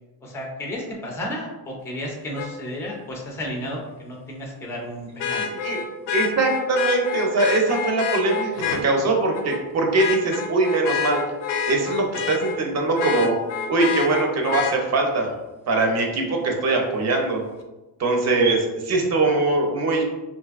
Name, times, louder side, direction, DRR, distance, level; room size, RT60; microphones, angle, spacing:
voice 1, 0.2-5.5, left 1 dB, 5° left, -1 dB, 0.3 m, -32 dB
Vehicle horn car horn honking, 2.4-2.5 5.2-8.8 9.3-9.6 10.0-12.6 13.0-14.7 16.6-16.7, left 7 dB, 70° left, 0.6 m, -27 dB
voice 2, 5.3-5.8 6.1-11.2 11.7-13.4 13.7-15.3 15.7-17.4 18.0-20.0, right 3 dB, 40° right, 2 dB, 0.6 m, -22 dB
4.0 x 2.6 x 2.4 m, 1.1 s
cardioid pair, 160°, 43 cm